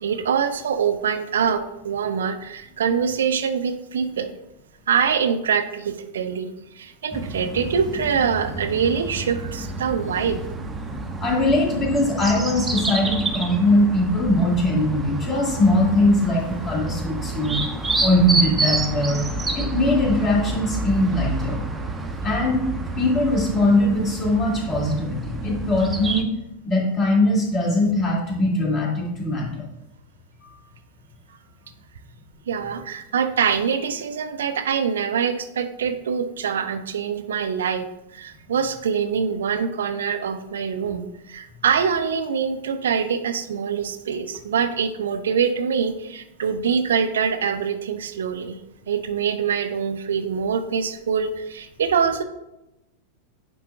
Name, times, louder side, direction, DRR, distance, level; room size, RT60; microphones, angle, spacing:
voice 1, 0.0-4.3 4.9-10.4 32.5-48.6 48.9-52.2, right 7 dB, 65° right, 8 dB, 0.4 m, -24 dB
sound 1, 7.1-26.2, right 2 dB, 10° right, 0.7 m, -29 dB
voice 2, 11.2-17.6 18.0-19.3 19.5-21.6 22.2-22.7 23.0-26.3 26.6-29.7 30.4-30.5, left 1 dB, 25° left, -3 dB, 2.2 m, -21 dB
9.2 x 5.4 x 2.3 m, 0.91 s
figure-of-eight pair, 90°, 0 cm